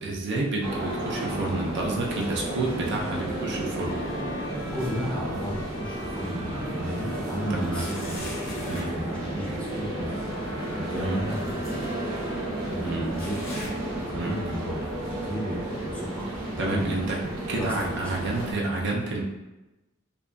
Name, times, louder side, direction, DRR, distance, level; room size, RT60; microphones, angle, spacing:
voice 1, 0.0-4.0 7.5-7.9 8.7-8.9 10.9-11.2 12.8-13.1 14.1-14.4 16.6-17.2 17.5-19.2, right 2 dB, 60° right, -1 dB, 0.4 m, -29 dB
sound 1, 0.6-18.5, right 1 dB, 85° right, 0.8 m, -32 dB
Bowed string instrument, 0.8-12.7, left 3 dB, 85° left, 0.5 m, -43 dB
sound 2, 3.0-3.7 4.1-6.0 6.5-6.6 7.6-9.0 10.7-10.8 11.7-11.8 13.1-14.5 14.9-15.2 15.9-16.0 16.9-17.0, left 1 dB, 50° left, 0.8 m, -44 dB
voice 2, 4.7-11.9 12.7-13.6 14.0-17.1 17.5-18.3, equal, 5° left, -6 dB, 0.5 m, -34 dB
2.7 x 2.4 x 2.2 m, 1.0 s
head